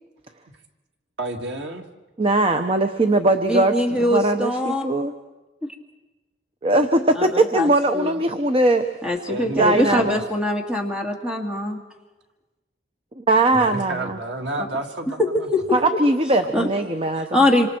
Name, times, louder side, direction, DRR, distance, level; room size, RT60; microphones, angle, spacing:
voice 1, 1.2-1.9 9.3-10.2 13.5-15.5, right 2 dB, 85° right, 3 dB, 1.9 m, -30 dB
voice 2, 2.2-5.1 6.6-8.9 9.6-10.2 13.2-14.2 15.7-17.3, right 2 dB, 35° right, 7 dB, 0.9 m, -20 dB
voice 3, 3.5-4.8 5.6-5.7 7.2-8.1 9.0-11.8 14.6-14.7 15.2-15.6 16.5-16.7 17.3-17.7, left 1 dB, 5° right, 2 dB, 2.2 m, -22 dB
27.0 x 25.5 x 4.5 m, 1.1 s
head